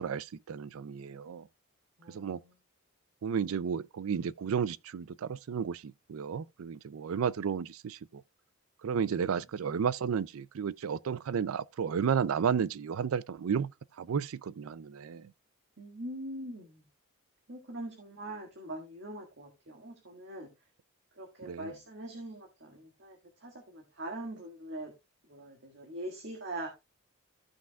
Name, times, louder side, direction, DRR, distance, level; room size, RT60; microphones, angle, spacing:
voice 1, 0.0-1.5 2.1-2.4 3.2-8.2 8.8-13.7 14.0-15.3 21.5-21.7, right 7 dB, 80° right, 0.4 m, -32 dB
voice 2, 2.0-2.5 9.1-9.4 15.8-16.8 17.5-20.5 21.1-24.9 25.2-26.7, right 1 dB, 60° right, 1.8 m, -43 dB
15.0 x 5.8 x 2.3 m
head